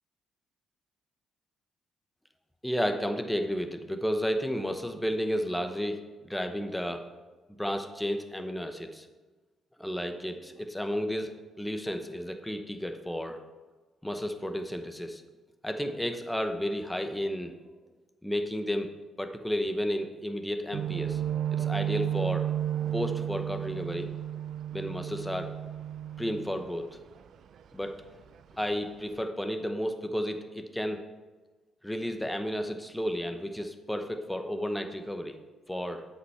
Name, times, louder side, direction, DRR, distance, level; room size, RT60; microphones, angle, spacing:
voice 1, 2.6-6.0 6.3-7.0 7.6-9.1 9.8-11.3 11.6-13.4 14.0-15.2 15.6-17.5 18.2-18.9 19.2-21.2 21.5-22.5 22.9-24.1 24.7-25.6 26.2-26.9 27.7-27.9 28.5-31.0 31.8-35.4 35.7-36.1, equal, 5° left, 6 dB, 0.9 m, -32 dB
sound 1, 20.7-27.2 27.6-27.8 28.2-28.8 29.1-29.2, right 10 dB, 65° right, 0.4 m, -33 dB
7.9 x 5.4 x 5.7 m, 1.3 s
cardioid pair, 90°, 0 cm